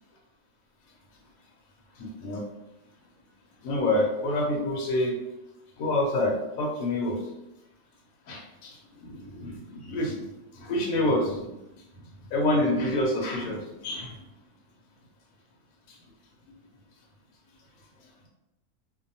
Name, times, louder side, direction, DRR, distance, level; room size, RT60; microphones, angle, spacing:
voice 1, 2.0-2.4 3.6-5.2 5.8-7.2 8.3-10.2 10.5-11.5 12.3-14.2, left 1 dB, 75° left, -1 dB, 1.0 m, -27 dB
2.6 x 2.1 x 2.6 m, 0.92 s
omnidirectional pair, 1.6 m